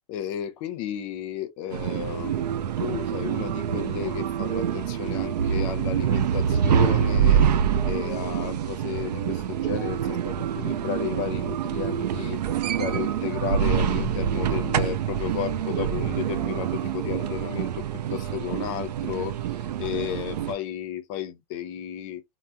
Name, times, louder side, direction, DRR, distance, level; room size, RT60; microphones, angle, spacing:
voice 1, 0.0-2.5 2.8-7.4 7.8-12.4 12.8-22.2, left 11 dB, 50° left, 0.6 m, -33 dB
sound 1, 1.7-20.5, right 8 dB, 85° right, 0.4 m, -26 dB
3.3 x 2.0 x 2.6 m
hypercardioid pair, 110°, 20 cm